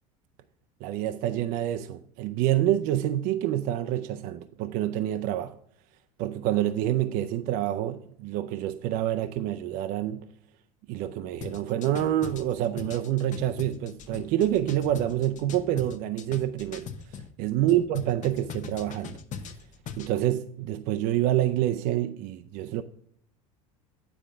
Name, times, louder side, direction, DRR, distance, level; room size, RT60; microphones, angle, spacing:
voice 1, 0.8-5.5 6.2-10.3 10.9-16.9 17.4-19.2 20.0-22.8, right 12 dB, 55° right, 0.5 m, -27 dB
sound 1, 11.4-17.3 17.7-20.1, left 6 dB, 45° left, 0.8 m, -40 dB
9.3 x 3.6 x 6.8 m
hypercardioid pair, 80°, 18 cm